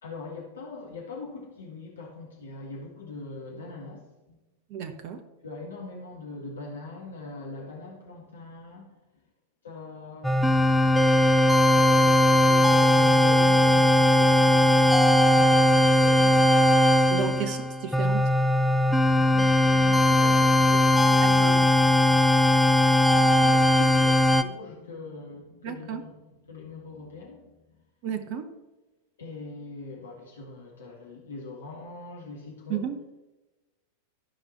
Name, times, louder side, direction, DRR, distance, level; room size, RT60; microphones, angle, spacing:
voice 1, 0.0-4.4 5.4-8.9 9.6-10.7 11.7-17.3 18.8-26.2 26.5-27.5 29.2-32.8, left 3 dB, 65° left, -1 dB, 1.8 m, -42 dB
voice 2, 4.7-5.2 17.1-18.3 21.2-21.5 25.6-26.1 28.0-28.5 32.7-33.0, right 8 dB, 45° right, 8 dB, 0.9 m, -32 dB
sound 1, 10.2-24.4, left 1 dB, ahead, 0.5 m, -19 dB
13.5 x 5.2 x 4.3 m, 1.1 s
figure-of-eight pair, 90°, 0 cm